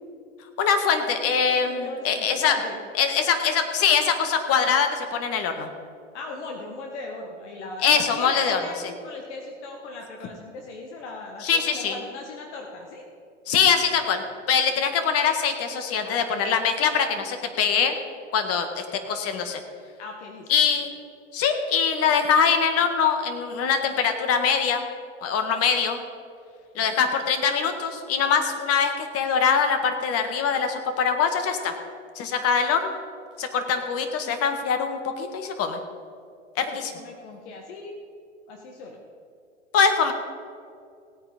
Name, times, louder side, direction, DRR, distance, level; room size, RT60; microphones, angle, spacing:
voice 1, 0.6-2.6 3.0-5.7 7.8-8.6 11.4-12.0 13.5-17.9 18.3-19.6 20.5-20.9 21.3-24.8 25.2-26.0 26.8-31.8 32.2-33.0 33.4-35.8 36.6-36.9 39.7-40.1, left 6 dB, 40° left, 7 dB, 1.8 m, -23 dB
voice 2, 1.5-2.8 6.1-13.0 16.0-16.5 20.0-20.7 26.8-27.0 36.9-38.0 38.5-39.0, left 3 dB, 65° left, 1 dB, 1.7 m, -38 dB
17.5 x 8.8 x 5.2 m, 2.4 s
hypercardioid pair, 95°, 37 cm